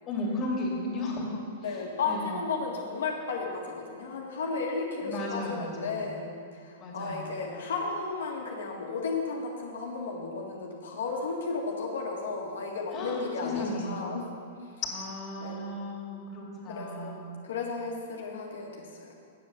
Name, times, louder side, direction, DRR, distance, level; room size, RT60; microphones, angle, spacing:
voice 1, 0.1-1.4 2.0-2.3 5.0-6.1 6.8-7.4 12.9-14.1 14.8-17.4, left 2 dB, 30° left, -3 dB, 2.8 m, -35 dB
voice 2, 1.6-14.3 15.4-15.7 16.7-19.1, left 4 dB, 80° left, -1 dB, 1.8 m, -34 dB
9.0 x 7.5 x 6.7 m, 2.2 s
hypercardioid pair, 125°, 0 cm